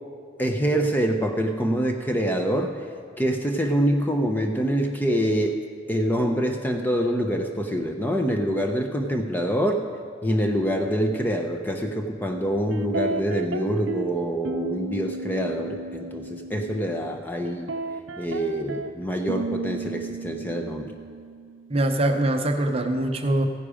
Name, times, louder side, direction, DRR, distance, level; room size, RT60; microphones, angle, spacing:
voice 1, 0.4-2.8 3.2-5.6 5.9-9.8 10.2-17.7 18.2-20.9, equal, 10° left, 4 dB, 0.6 m, -25 dB
sound 1, 12.7-14.1 14.4-17.2 17.4-21.8, right 3 dB, 75° right, 0.6 m, -33 dB
voice 2, 21.7-23.4, right 1 dB, 30° right, 5 dB, 0.7 m, -23 dB
15.0 x 10.0 x 5.0 m, 2.1 s
head